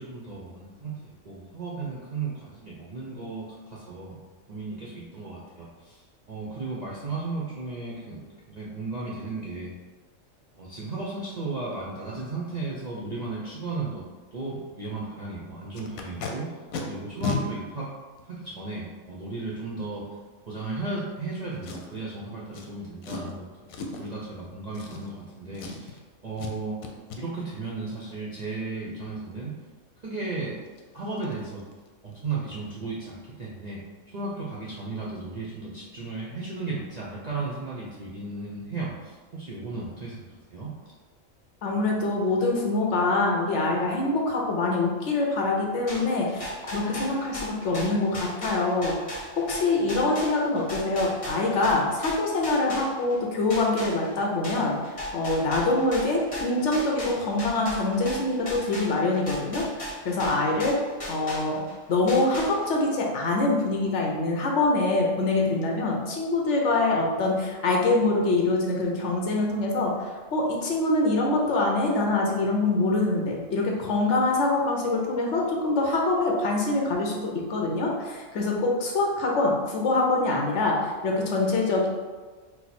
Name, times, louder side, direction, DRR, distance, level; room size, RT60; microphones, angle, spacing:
voice 1, 0.0-4.2 4.5-8.2 8.5-9.8 10.5-14.0 14.3-16.5 16.8-17.9 18.3-20.1 20.5-23.5 24.0-26.0 26.2-26.8 27.2-29.5 30.0-30.6 30.9-31.6 32.0-33.8 34.1-40.7, right 3 dB, 55° right, -6 dB, 0.5 m, -35 dB
Packing tape duct tape, 15.7-16.3 16.7-16.8 17.2-17.4 18.2-18.3 21.6-22.1 22.5-22.7 23.0-23.3 23.7-24.1 24.7-25.3 25.5-26.0 26.4-26.5 26.8-27.2 30.2-30.3 30.7-30.8 31.2-31.3 31.6-31.9 32.1-32.2, left 5 dB, 85° left, 1.0 m, -34 dB
voice 2, 41.6-54.7 55.1-60.8 61.1-61.6 61.9-81.9, left 2 dB, 65° left, 0 dB, 1.0 m, -25 dB
sound 1, 45.9-53.2 53.5-61.7 62.1-62.9, left 1 dB, 30° left, 0.9 m, -37 dB
4.5 x 2.1 x 4.1 m, 1.4 s
omnidirectional pair, 1.4 m